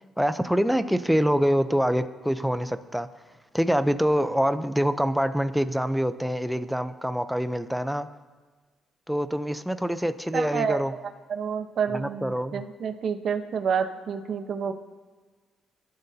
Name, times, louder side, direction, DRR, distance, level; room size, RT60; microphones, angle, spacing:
voice 1, 0.2-3.1 3.5-8.1 9.1-10.9 11.9-12.6, equal, ahead, 11 dB, 0.7 m, -25 dB
voice 2, 10.3-11.0 11.3-14.7, right 7 dB, 60° right, 7 dB, 1.0 m, -29 dB
24.5 x 12.0 x 2.8 m, 1.4 s
cardioid pair, 90°, 0 cm